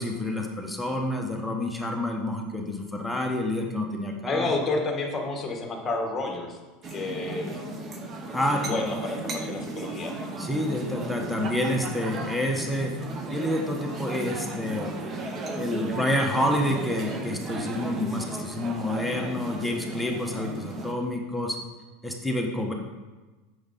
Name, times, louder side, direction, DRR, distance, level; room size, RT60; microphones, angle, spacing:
voice 1, 0.0-4.5 8.3-8.8 10.4-12.9 13.3-15.0 15.6-21.6 22.0-22.7, left 1 dB, ahead, 1 dB, 1.1 m, -28 dB
voice 2, 4.3-6.6 6.9-7.6 8.6-10.2 18.1-18.3, left 3 dB, 20° left, 2 dB, 1.5 m, -30 dB
sound 1, 6.8-20.9, right 2 dB, 30° right, 1.1 m, -35 dB
8.4 x 6.3 x 4.2 m, 1.2 s
supercardioid pair, 120°, 0 cm